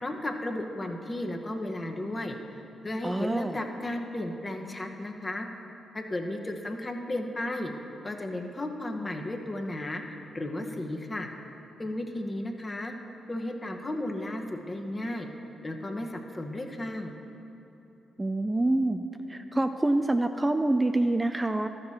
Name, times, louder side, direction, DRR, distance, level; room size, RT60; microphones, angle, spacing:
voice 1, 0.0-2.4 2.8-5.5 5.9-7.7 8.0-10.0 10.3-11.3 11.8-12.9 13.3-15.3 15.6-17.1, left 1 dB, 30° left, 3 dB, 1.1 m, -34 dB
voice 2, 3.0-3.6 18.2-19.0 19.3-21.7, right 2 dB, 20° right, 7 dB, 0.4 m, -26 dB
12.5 x 6.7 x 4.2 m, 3.0 s
supercardioid pair, 45°, 0 cm